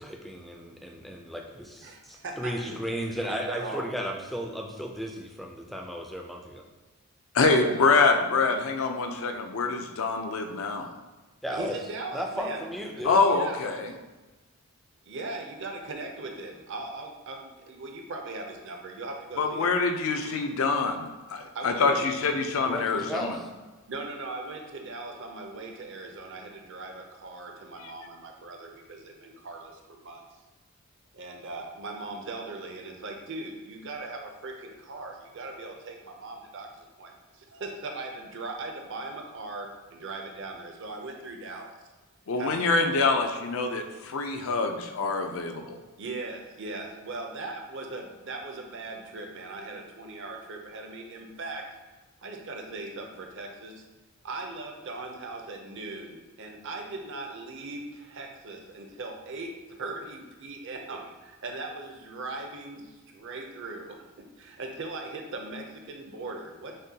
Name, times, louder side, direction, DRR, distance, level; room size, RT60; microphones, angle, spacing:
voice 1, 0.0-6.6 11.4-11.8 12.1-13.2 22.6-23.5, equal, ahead, 0 dB, 0.4 m, -35 dB
voice 2, 1.8-2.8 3.3-3.9 7.5-7.8 11.5-12.7 12.9-13.6 15.1-19.7 21.5-22.0 23.9-30.2 31.1-41.8 42.3-42.6 46.0-51.6 52.2-53.8 54.2-66.8, right 2 dB, 55° right, 2 dB, 0.6 m, -39 dB
voice 3, 7.3-10.9 13.0-13.9 19.4-23.4 42.3-45.8, left 4 dB, 65° left, 5 dB, 0.5 m, -25 dB
6.4 x 2.2 x 2.8 m, 1.2 s
head